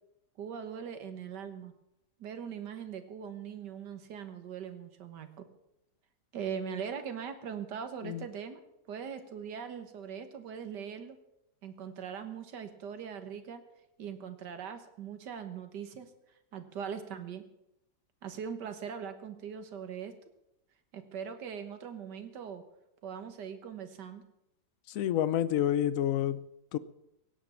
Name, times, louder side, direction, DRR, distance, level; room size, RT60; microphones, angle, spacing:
voice 1, 0.4-1.7 2.2-5.5 6.3-8.6 8.9-11.2 11.6-13.6 14.0-16.1 16.5-17.5 18.2-20.1 20.9-22.6 23.0-24.2, right 7 dB, 80° right, 9 dB, 1.9 m, -41 dB
voice 2, 24.9-26.4 26.7-26.8, left 11 dB, 60° left, 17 dB, 1.0 m, -28 dB
17.0 x 8.6 x 7.3 m, 0.85 s
omnidirectional pair, 1.8 m